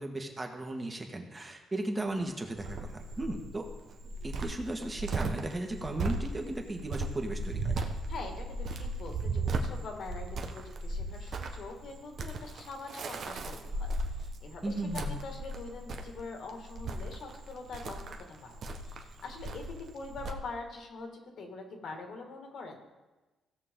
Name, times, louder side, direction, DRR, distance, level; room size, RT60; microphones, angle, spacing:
voice 1, 0.0-3.6 4.2-7.7 14.6-15.2, right 2 dB, 20° right, 3 dB, 1.6 m, -36 dB
Cricket, 2.6-20.3, right 2 dB, 60° right, 1.1 m, -36 dB
voice 2, 8.1-18.6 18.8-19.6 19.9-21.1 21.4-22.8, left 3 dB, 65° left, 3 dB, 2.0 m, -44 dB
16.5 x 6.7 x 3.8 m, 1.2 s
cardioid pair, 90°, 0 cm